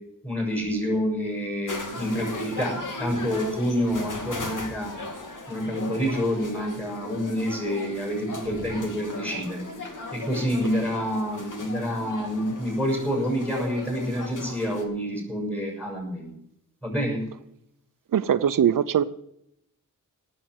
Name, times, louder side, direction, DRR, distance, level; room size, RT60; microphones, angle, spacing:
voice 1, 0.2-4.9 5.5-9.7 10.1-16.3 16.8-17.3, equal, 5° left, 0 dB, 6.6 m, -28 dB
sound 1, 1.7-14.8, left 2 dB, 70° left, 2.8 m, -37 dB
voice 2, 18.1-19.0, right 9 dB, 85° right, 11 dB, 0.7 m, -21 dB
18.0 x 7.8 x 7.9 m, 0.77 s
wide cardioid pair, 165°, 32 cm